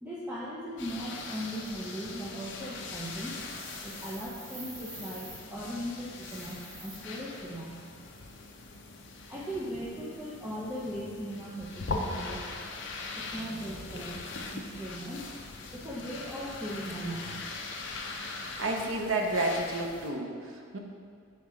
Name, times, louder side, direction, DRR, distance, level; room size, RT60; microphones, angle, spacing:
voice 1, 0.0-3.4 3.8-7.8 9.3-12.4 13.2-15.3 15.7-17.4, equal, 10° right, -6 dB, 0.6 m, -38 dB
sound 1, 0.8-20.1, left 3 dB, 55° left, 0.6 m, -41 dB
sound 2, 3.3-5.4 6.1-7.0, right 2 dB, 50° right, 1.6 m, -47 dB
voice 2, 18.6-20.8, right 2 dB, 70° right, 2 dB, 0.8 m, -31 dB
5.9 x 4.3 x 4.8 m, 2.2 s
head